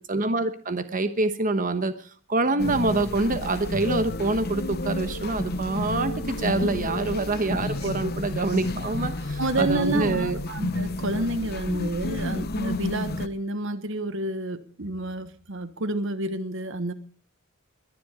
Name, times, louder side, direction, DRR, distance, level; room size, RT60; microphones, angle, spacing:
voice 1, 0.1-10.4, right 2 dB, 40° right, 10 dB, 1.1 m, -26 dB
sound 1, 2.6-13.3, left 2 dB, 50° left, 1.0 m, -30 dB
voice 2, 9.4-16.9, right 2 dB, 65° right, 12 dB, 1.2 m, -29 dB
21.5 x 10.5 x 5.0 m, 0.43 s
head